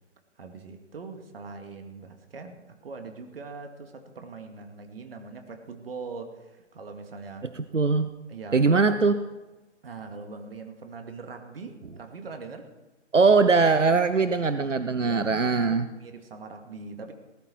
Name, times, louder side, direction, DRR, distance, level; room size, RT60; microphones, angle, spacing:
voice 1, 0.4-7.5 8.3-9.0 9.8-12.7 15.0-17.1, right 4 dB, 55° right, 5 dB, 2.2 m, -42 dB
voice 2, 7.5-8.1 8.5-9.2 13.1-15.9, right 4 dB, 90° right, 11 dB, 0.8 m, -21 dB
19.0 x 11.5 x 4.6 m, 1.1 s
figure-of-eight pair, 135°, 36 cm